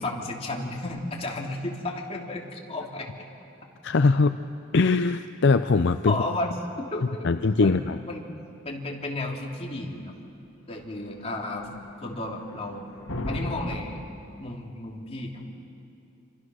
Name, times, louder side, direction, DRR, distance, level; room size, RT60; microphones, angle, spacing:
voice 1, 0.0-3.1 6.0-6.5 6.8-7.3 7.6-8.3 8.6-10.2 10.7-11.7 12.0-12.9 13.3-14.0 14.4-15.4, left 2 dB, 30° left, -1 dB, 3.1 m, -33 dB
voice 2, 3.8-4.4 4.7-6.1 7.2-8.0, left 4 dB, 60° left, 10 dB, 0.5 m, -21 dB
sound 1, 10.7-13.8, left 1 dB, 90° left, 2.0 m, -37 dB
28.5 x 25.5 x 6.3 m, 2.6 s
head